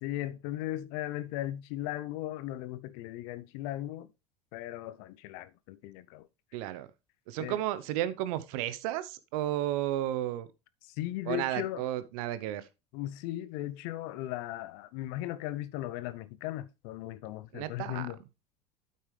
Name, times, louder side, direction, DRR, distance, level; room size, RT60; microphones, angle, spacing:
voice 1, 0.0-4.1 4.5-6.3 7.4-7.6 10.8-11.9 12.9-18.2, left 14 dB, 65° left, 0.7 m, -37 dB
voice 2, 6.5-6.9 7.3-10.5 11.3-12.6 17.5-18.1, right 13 dB, 65° right, 0.9 m, -33 dB
8.6 x 8.6 x 3.3 m
hypercardioid pair, 75°, 19 cm